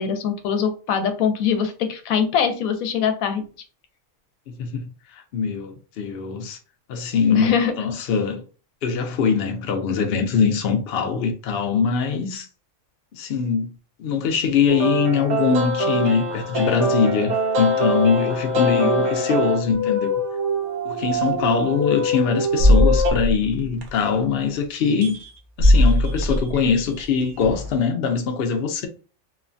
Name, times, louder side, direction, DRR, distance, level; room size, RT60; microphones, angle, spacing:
voice 1, 0.0-3.4 7.3-7.8 18.6-18.9, left 7 dB, 85° left, 1.0 m, -22 dB
voice 2, 4.5-6.6 6.9-8.4 8.8-12.5 13.1-13.7 14.0-20.2 20.8-25.2 25.6-28.9, left 5 dB, 60° left, 0.6 m, -22 dB
sound 1, 14.7-23.1, equal, 90° right, 1.3 m, -23 dB
sound 2, 22.6-24.2 25.0-25.3 25.6-27.8, left 1 dB, 60° right, 0.5 m, -19 dB
3.0 x 2.1 x 2.5 m
omnidirectional pair, 1.4 m